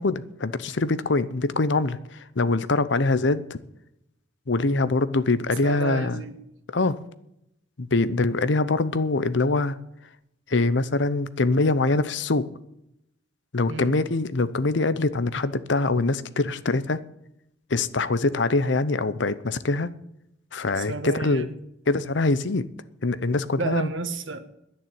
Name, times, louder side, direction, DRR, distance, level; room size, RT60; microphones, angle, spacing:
voice 1, 0.0-3.6 4.5-6.2 6.7-7.0 7.8-9.8 10.5-12.5 13.5-17.0 17.7-19.9 20.5-21.5 21.9-22.7 23.0-23.9, left 3 dB, 70° left, 15 dB, 0.8 m, -24 dB
voice 2, 5.6-6.4 13.7-13.9 20.8-21.5 23.6-24.4, right 3 dB, 80° right, 9 dB, 1.5 m, -31 dB
10.5 x 9.5 x 8.8 m, 0.79 s
head